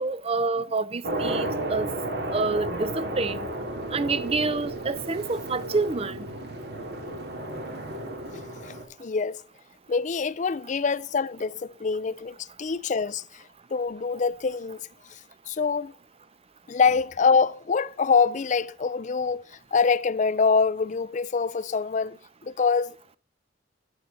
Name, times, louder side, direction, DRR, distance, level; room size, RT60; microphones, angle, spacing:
voice 1, 0.0-1.9 2.3-3.5 3.9-6.3, right 3 dB, 35° right, 0.7 m, -27 dB
sound 1, 1.0-8.9, right 1 dB, 60° right, 2.4 m, -33 dB
voice 2, 9.0-9.4 9.9-13.2 13.7-14.8 15.5-15.9 16.7-19.4 19.7-23.2, left 5 dB, 40° left, 0.4 m, -25 dB
11.0 x 8.8 x 3.9 m
head